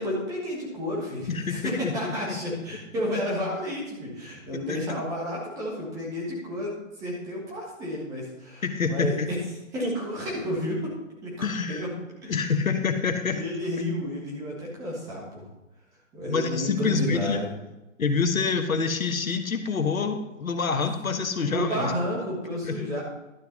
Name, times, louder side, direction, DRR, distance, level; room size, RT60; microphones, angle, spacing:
voice 1, 0.0-9.4 9.7-10.9 11.2-11.9 12.2-12.3 13.3-15.4 16.1-17.5 21.4-23.0, equal, 10° right, -3 dB, 1.4 m, -31 dB
voice 2, 1.3-2.4 4.7-4.8 8.6-9.3 11.4-11.9 12.3-13.4 16.3-17.4 18.0-21.9 22.6-22.8, left 5 dB, 80° left, 6 dB, 1.4 m, -27 dB
11.5 x 6.0 x 5.3 m, 1.0 s
hypercardioid pair, 160°, 40 cm